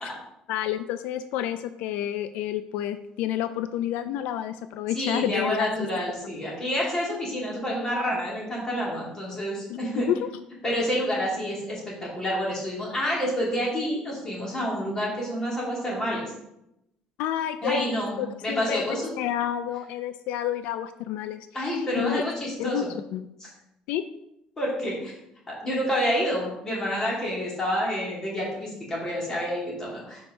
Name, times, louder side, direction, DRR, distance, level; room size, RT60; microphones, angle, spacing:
voice 1, 0.5-5.9 9.7-9.8 10.1-10.3 17.2-18.8 19.2-22.2 22.6-22.9 23.1-23.3 23.9-24.1, left 11 dB, 90° left, 11 dB, 0.3 m, -29 dB
voice 2, 4.9-10.1 10.6-16.3 17.6-19.1 21.5-22.9 24.6-25.1 25.5-30.3, equal, 25° left, -4 dB, 2.8 m, -28 dB
5.2 x 4.5 x 6.2 m, 0.84 s
cardioid pair, 135°, 2 cm